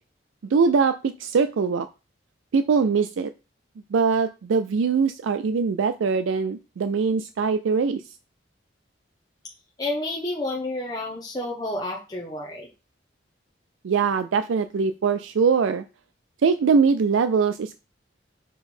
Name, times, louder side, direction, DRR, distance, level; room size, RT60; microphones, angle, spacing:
voice 1, 0.5-1.9 2.5-3.3 3.9-8.0 13.8-15.8 16.4-17.8, right 5 dB, 85° right, 10 dB, 0.4 m, -22 dB
voice 2, 9.8-12.7, left 2 dB, 20° left, -3 dB, 0.9 m, -30 dB
6.0 x 3.9 x 4.3 m, 0.30 s
head